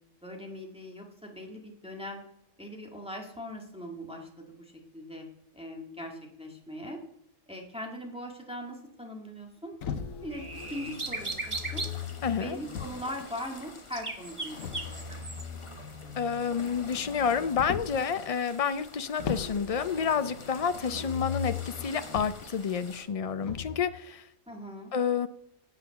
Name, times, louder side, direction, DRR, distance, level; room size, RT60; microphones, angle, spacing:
voice 1, 0.2-2.2 2.6-5.3 5.5-7.0 7.5-9.7 10.2-11.9 12.3-14.8 24.5-24.9, equal, 5° right, 0 dB, 1.8 m, -40 dB
Motor vehicle (road), 9.8-13.3 14.6-18.1 19.2-22.5 23.4-23.8, left 8 dB, 85° left, 1.3 m, -39 dB
sound 1, 10.3-12.0 13.4-13.5 13.9-15.4, right 3 dB, 25° right, 1.2 m, -36 dB
sound 2, 10.5-23.0, left 2 dB, 25° left, 1.2 m, -48 dB
voice 2, 12.2-12.6 16.2-24.3 24.9-25.3, left 6 dB, 70° left, 11 dB, 0.3 m, -29 dB
9.8 x 7.7 x 5.9 m, 0.77 s
omnidirectional pair, 1.4 m